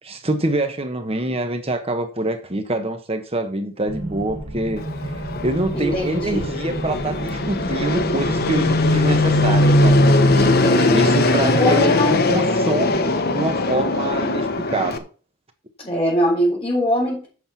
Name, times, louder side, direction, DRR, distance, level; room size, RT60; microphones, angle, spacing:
voice 1, 0.0-5.1 5.4-10.1 10.9-15.1, right 2 dB, 30° right, 1.2 m, -25 dB
sound 1, 3.9-10.5, right 1 dB, 85° right, 2.4 m, -31 dB
Fixed-wing aircraft airplane, 4.8-15.0, left 2 dB, 50° left, 1.2 m, -19 dB
voice 2, 5.7-6.5 10.3-11.1 11.4-12.2 12.7-12.9 13.7-13.9 15.8-17.3, equal, 30° left, 4.5 m, -22 dB
8.2 x 6.6 x 7.2 m
head